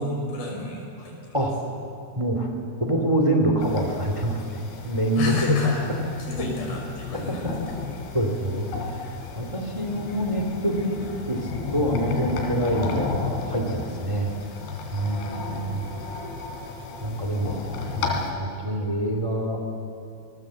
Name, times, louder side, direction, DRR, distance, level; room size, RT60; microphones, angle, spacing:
voice 1, 0.0-1.4 5.2-5.8 6.2-7.9 15.0-15.8, left 4 dB, 70° left, 0 dB, 6.7 m, -30 dB
voice 2, 2.1-2.5 2.8-5.5 7.1-7.5 8.1-8.6 9.3-11.0 11.3-14.3 14.9-15.2 15.6-15.9 17.0-17.6 17.9-19.6, right 1 dB, 10° right, 3 dB, 1.6 m, -26 dB
sound 1, 3.6-18.3, left 4 dB, 90° left, 4.8 m, -33 dB
26.5 x 20.5 x 7.6 m, 2.5 s
omnidirectional pair, 4.5 m